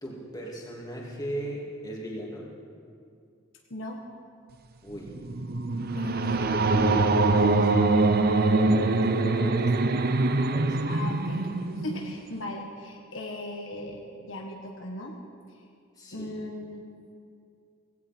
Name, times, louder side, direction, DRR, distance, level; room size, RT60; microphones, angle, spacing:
voice 1, 0.0-2.5 4.8-5.2 6.1-6.6 8.6-10.8 16.0-16.4, right 1 dB, 20° left, -3 dB, 2.6 m, -38 dB
voice 2, 3.7-4.0 5.9-7.8 9.2-9.5 10.9-11.5 11.7-15.1 15.5-15.6 16.1-16.9, left 1 dB, 65° left, 1 dB, 1.3 m, -37 dB
sound 1, 5.0-12.3, right 3 dB, 45° right, 0.6 m, -24 dB
17.5 x 17.0 x 4.5 m, 2.3 s
head